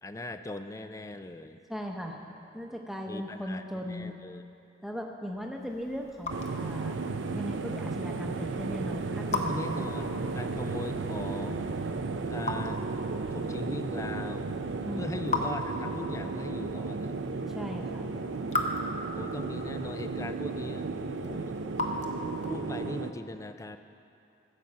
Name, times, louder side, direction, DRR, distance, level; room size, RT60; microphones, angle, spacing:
voice 1, 0.0-1.6 3.1-4.4 9.5-11.7 12.3-13.0 13.3-14.5 15.0-17.1 19.1-20.9 21.1-21.7 22.5-23.8, left 2 dB, 15° left, 9 dB, 0.3 m, -40 dB
voice 2, 1.7-2.2 2.5-4.1 4.8-7.0 7.3-9.9 14.8-15.3 17.5-18.1, equal, ahead, 1 dB, 0.8 m, -38 dB
Raindrop / Drip, 5.5-22.7, left 2 dB, 35° left, 0.8 m, -39 dB
sound 1, 6.3-23.1, right 3 dB, 85° right, 0.6 m, -34 dB
15.0 x 5.5 x 7.4 m, 2.8 s
head